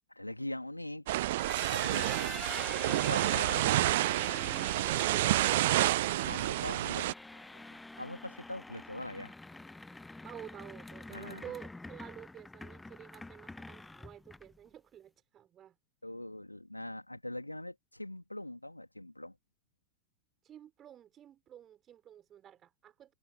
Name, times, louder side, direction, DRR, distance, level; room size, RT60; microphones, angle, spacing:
voice 1, 0.1-1.1 1.7-2.1 2.9-4.1 6.2-9.3 11.1-11.4 16.0-19.4, left 1 dB, 85° left, 2.9 m, -42 dB
sound 1, 1.1-7.1, right 16 dB, 55° right, 0.3 m, -29 dB
sound 2, 1.2-14.7, left 2 dB, 5° left, 1.1 m, -46 dB
voice 2, 1.7-2.2 4.8-5.7 10.2-15.7 20.4-23.1, right 10 dB, 30° right, 5.1 m, -50 dB
figure-of-eight pair, 90°, 0 cm